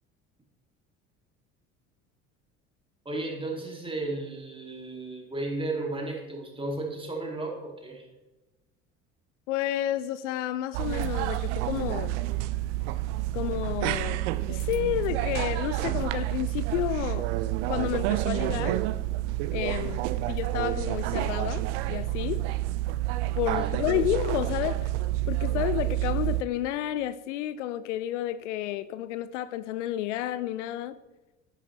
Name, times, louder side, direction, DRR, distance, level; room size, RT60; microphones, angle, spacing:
voice 1, 3.0-8.1 19.8-20.0, right 2 dB, 15° right, 2.7 m, -34 dB
voice 2, 9.5-12.2 13.3-14.2 14.5-17.3 17.7-18.8 19.5-20.0 20.3-22.5 23.3-24.9 25.3-31.0, left 13 dB, 70° left, 0.5 m, -31 dB
sound 1, 10.7-26.4, right 16 dB, 65° right, 0.5 m, -29 dB
11.0 x 9.2 x 3.3 m
figure-of-eight pair, 60°, 38 cm